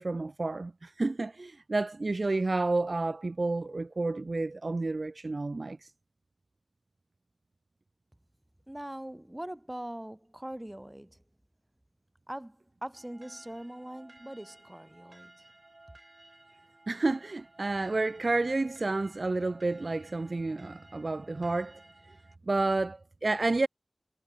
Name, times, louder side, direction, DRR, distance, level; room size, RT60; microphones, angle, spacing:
voice 1, 0.0-5.8 16.9-21.8 22.5-23.7, right 3 dB, 70° right, 0.4 m, -30 dB
voice 2, 8.7-11.2 12.3-15.4, right 1 dB, 15° right, 4.5 m, -42 dB
sound 1, 12.9-22.4, right 2 dB, 50° right, 7.6 m, -57 dB
wide cardioid pair, 55°, 0 cm